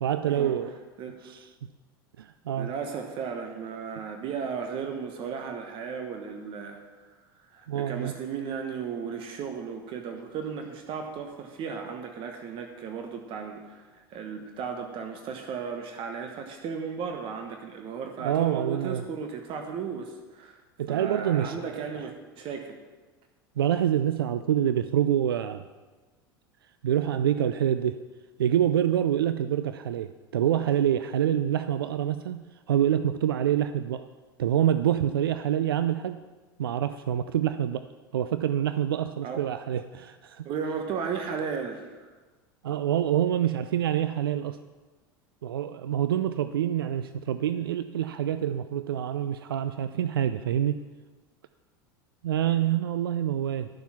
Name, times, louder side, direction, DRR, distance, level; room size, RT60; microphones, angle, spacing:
voice 1, 0.0-0.7 1.2-1.5 2.2-2.7 7.7-8.1 18.2-19.0 20.8-22.0 23.6-25.6 26.8-28.0 28.4-34.0 34.4-36.2 36.6-37.8 38.1-40.5 42.6-44.6 45.4-50.8 52.2-53.7, right 10 dB, 80° right, 11 dB, 0.4 m, -26 dB
voice 2, 2.5-7.1 7.5-13.8 14.1-20.6 20.9-22.8 39.2-39.5 40.4-41.9, right 6 dB, 45° right, 4 dB, 1.3 m, -35 dB
11.5 x 7.2 x 6.0 m, 1.3 s
hypercardioid pair, 80°, 12 cm